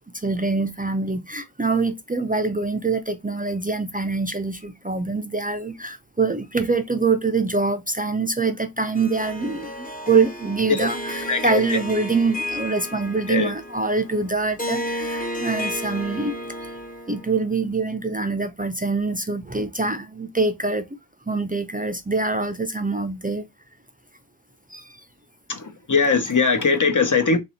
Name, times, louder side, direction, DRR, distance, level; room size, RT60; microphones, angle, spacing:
voice 1, 0.1-16.4 17.1-20.8 21.3-23.4 24.7-25.0, right 4 dB, 20° right, 0.5 m, -24 dB
Harp, 9.0-17.4, equal, 20° left, 1.0 m, -33 dB
voice 2, 11.3-11.8 13.3-13.5 25.5-27.4, left 4 dB, 45° left, 0.9 m, -20 dB
3.2 x 2.7 x 4.1 m
wide cardioid pair, 45°, 41 cm